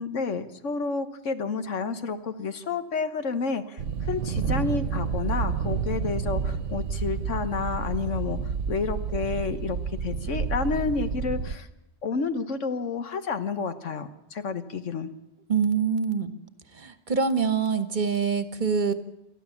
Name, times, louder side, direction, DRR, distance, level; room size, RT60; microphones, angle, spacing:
voice 1, 0.0-11.7 12.0-15.1, left 5 dB, 90° left, 9 dB, 1.6 m, -30 dB
sound 1, 3.8-11.6, right 6 dB, 85° right, 1.3 m, -29 dB
voice 2, 15.5-16.3 16.7-18.9, right 6 dB, 40° right, 10 dB, 1.2 m, -25 dB
28.0 x 13.0 x 7.2 m, 0.86 s
omnidirectional pair, 1.2 m